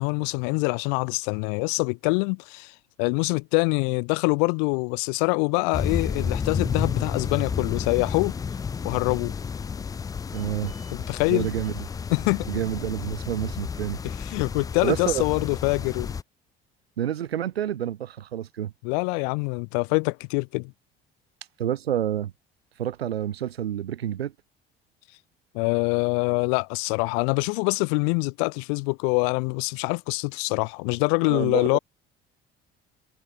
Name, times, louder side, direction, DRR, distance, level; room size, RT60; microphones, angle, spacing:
voice 1, 0.0-8.3 8.8-9.3 10.9-11.5 12.1-12.5 14.0-16.1 18.8-20.7 25.5-31.8, left 40 dB or more, 55° left, 0.6 m, -25 dB
sound 1, 5.7-16.2, left 6 dB, 15° left, 0.3 m, -31 dB
voice 2, 10.3-10.9 11.3-11.8 12.5-14.0 14.8-15.2 17.0-18.7 21.6-22.3 22.8-24.3 31.2-31.8, right 10 dB, 75° right, 1.3 m, -28 dB
figure-of-eight pair, 55°, 30 cm